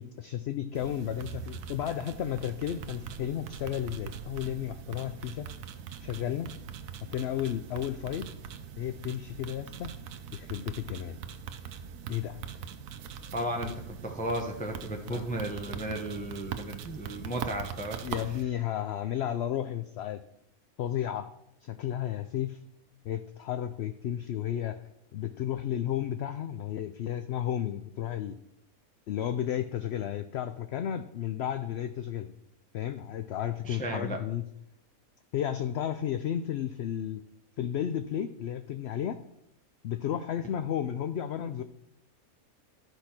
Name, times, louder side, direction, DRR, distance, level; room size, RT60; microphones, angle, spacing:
voice 1, 0.0-5.5 6.0-6.5 7.1-8.3 8.8-9.9 10.3-11.2 12.1-12.4 13.7-13.8 15.0-15.3 18.0-20.2 20.8-21.3 21.6-22.6 23.0-24.8 25.1-28.4 29.1-32.3 32.7-34.4 35.3-37.2 37.6-39.2 39.8-41.6, left 10 dB, 65° left, 10 dB, 0.7 m, -33 dB
sound 1, 0.7-18.4, right 7 dB, 75° right, 1.1 m, -42 dB
voice 2, 13.3-18.0 33.6-34.2, right 1 dB, 5° left, 2 dB, 0.8 m, -34 dB
12.0 x 5.0 x 5.9 m, 0.78 s
omnidirectional pair, 1.5 m